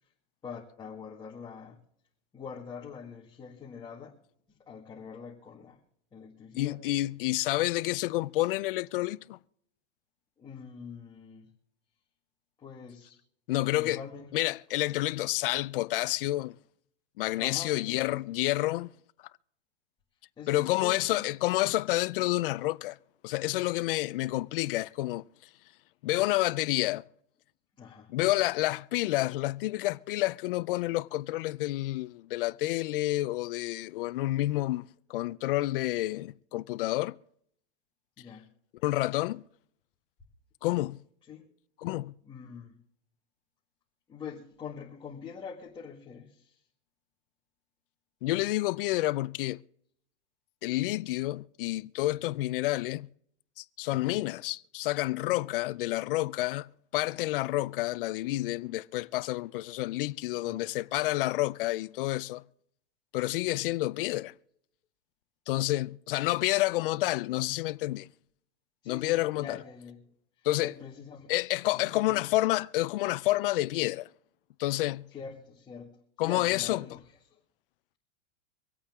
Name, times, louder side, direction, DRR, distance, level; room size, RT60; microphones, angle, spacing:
voice 1, 0.4-1.8 2.3-4.2 4.7-5.8 6.1-6.8 10.4-11.5 12.6-13.2 13.7-14.3 17.4-18.0 20.4-21.4 27.8-28.1 38.2-38.5 41.3-41.5 42.2-42.8 44.1-46.6 53.9-54.2 60.4-60.8 68.8-70.0 70.4-71.3 71.7-72.2 75.1-77.0 77.3-77.4, left 6 dB, 10° left, 1.8 m, -44 dB
voice 2, 6.5-9.4 13.5-14.0 14.3-16.6 17.2-18.9 20.5-23.0 23.2-25.2 26.0-27.0 28.1-37.1 38.8-39.4 40.6-41.0 41.8-42.1 48.2-49.6 50.6-53.1 53.6-62.4 63.1-64.3 65.5-68.1 68.9-69.6 70.4-70.7 71.3-74.1 74.6-75.1 76.2-76.8, left 17 dB, 50° left, 0.5 m, -29 dB
25.0 x 8.6 x 3.6 m
supercardioid pair, 165°, 35 cm